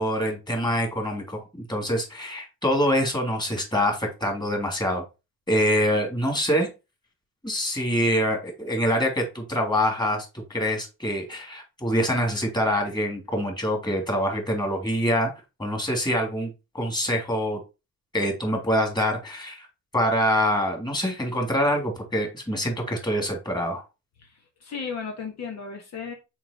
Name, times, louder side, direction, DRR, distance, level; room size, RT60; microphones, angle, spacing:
voice 1, 0.0-5.0 5.5-6.7 7.4-15.3 15.6-16.5 16.7-17.6 18.1-19.7 19.9-23.8, equal, 15° left, 3 dB, 2.9 m, -25 dB
voice 2, 24.2-26.1, left 5 dB, 60° left, 2 dB, 1.8 m, -35 dB
5.9 x 4.7 x 4.4 m, 0.27 s
cardioid pair, 90°, 30 cm